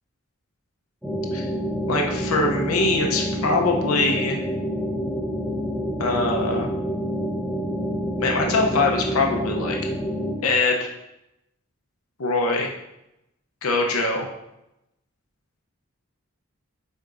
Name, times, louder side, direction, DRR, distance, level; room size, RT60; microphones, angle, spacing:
sound 1, 1.0-10.4, equal, 5° right, 0.8 m, -27 dB
voice 1, 1.9-4.4 6.0-6.7 8.2-9.8 10.4-10.9 12.2-12.7 13.6-14.3, left 3 dB, 80° left, 1 dB, 0.8 m, -22 dB
8.1 x 4.5 x 2.6 m, 0.89 s
head